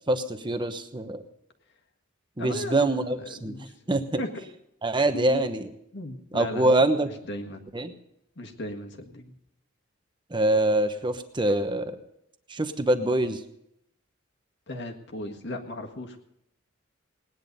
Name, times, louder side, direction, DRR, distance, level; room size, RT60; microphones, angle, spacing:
voice 1, 0.1-1.2 2.4-3.5 3.9-4.2 4.8-5.7 6.3-7.1 7.7-7.9 10.3-12.0 12.5-13.4, right 2 dB, 25° right, 9 dB, 1.0 m, -24 dB
voice 2, 2.4-3.8 4.2-4.4 5.1-5.4 5.9-7.6 8.3-9.3 14.7-16.2, left 1 dB, 60° left, 3 dB, 1.8 m, -37 dB
19.0 x 10.0 x 5.3 m, 0.79 s
head